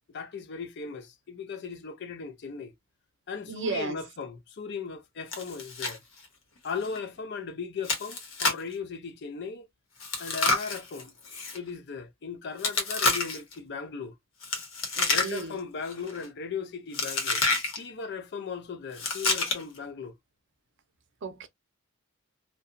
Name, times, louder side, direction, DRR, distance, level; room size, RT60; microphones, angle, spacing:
voice 1, 0.1-2.7 3.3-6.0 6.6-9.7 10.2-11.1 11.5-14.1 15.1-17.4 17.7-20.1, left 5 dB, 55° left, 0.5 m, -37 dB
voice 2, 3.5-4.0 15.0-15.6 21.2-21.5, right 3 dB, 65° right, 0.6 m, -34 dB
Chewing mastication, 5.3-6.0 6.2-6.3 6.8-7.0 7.8-8.7 10.0-11.6 12.6-13.5 14.4-15.6 15.9-16.2 16.9-17.8 18.9-19.8, left 3 dB, 85° left, 1.0 m, -29 dB
2.8 x 2.2 x 2.5 m
head